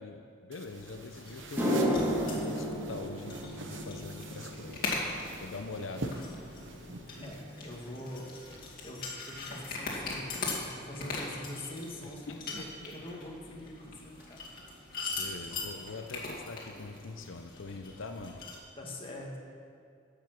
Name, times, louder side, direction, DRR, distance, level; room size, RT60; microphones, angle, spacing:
voice 1, 0.0-5.0 5.4-6.3 12.0-12.6 15.2-18.4, left 3 dB, 85° left, 5 dB, 0.7 m, -43 dB
sound 1, 0.5-8.6, right 2 dB, 75° right, 1.0 m, -46 dB
sound 2, 0.6-18.6, left 3 dB, 50° left, 2.4 m, -41 dB
sound 3, 0.8-0.9 1.4-9.9 10.2-10.6 11.3-11.4 14.2-14.3 15.9-16.0 16.2-16.5 16.7-17.3 17.7-17.8 18.3-18.4, equal, 10° right, 2.0 m, -36 dB
voice 2, 7.2-14.4 18.8-19.4, left 1 dB, 30° left, -2 dB, 1.9 m, -44 dB
14.5 x 7.0 x 6.0 m, 2.3 s
head